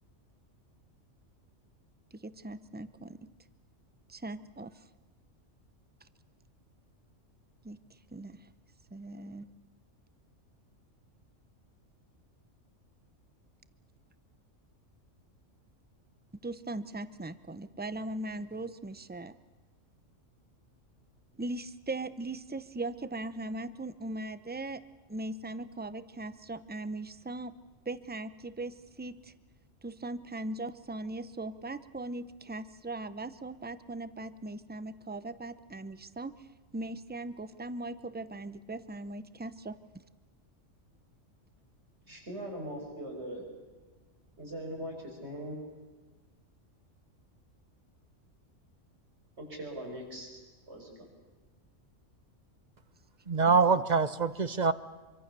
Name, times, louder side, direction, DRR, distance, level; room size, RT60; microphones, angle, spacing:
voice 1, 2.1-3.3 4.1-4.8 7.6-7.8 8.1-8.5 8.9-9.5 16.4-19.3 21.4-24.8 25.1-27.5 27.8-29.3 29.8-36.5 36.7-39.8 53.5-53.6, right 2 dB, 10° right, 0.7 m, -39 dB
voice 2, 42.1-43.4 44.4-45.6 49.4-50.4 50.7-50.9, equal, 55° right, 6.3 m, -40 dB
voice 3, 53.3-54.7, right 4 dB, 35° right, 1.0 m, -25 dB
26.0 x 24.5 x 6.9 m
omnidirectional pair, 1.3 m